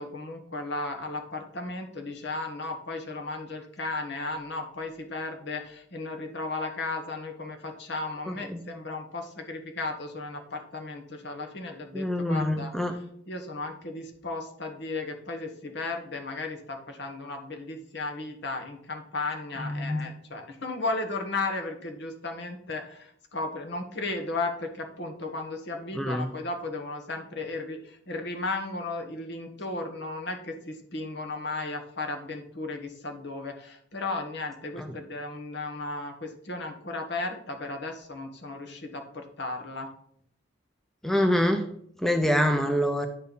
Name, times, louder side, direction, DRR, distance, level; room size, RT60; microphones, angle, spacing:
voice 1, 0.0-39.9, left 3 dB, 60° left, 4 dB, 1.4 m, -35 dB
voice 2, 11.9-12.9 19.7-20.0 26.0-26.3 41.0-41.7 42.0-43.1, equal, ahead, 6 dB, 0.6 m, -25 dB
9.3 x 4.4 x 5.4 m, 0.67 s
head